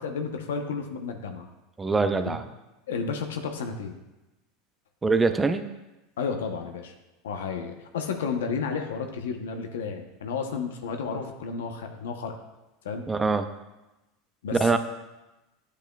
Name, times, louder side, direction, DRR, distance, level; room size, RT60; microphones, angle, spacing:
voice 1, 0.0-1.5 2.2-2.4 2.9-4.0 6.2-6.9 7.2-12.4 12.8-13.0 14.4-14.8, left 5 dB, 90° left, 4 dB, 0.8 m, -32 dB
voice 2, 1.8-2.4 5.0-5.7 13.1-13.5 14.6-14.8, right 4 dB, 15° right, 9 dB, 0.6 m, -23 dB
10.0 x 8.2 x 2.3 m, 1.0 s
supercardioid pair, 105°, 0 cm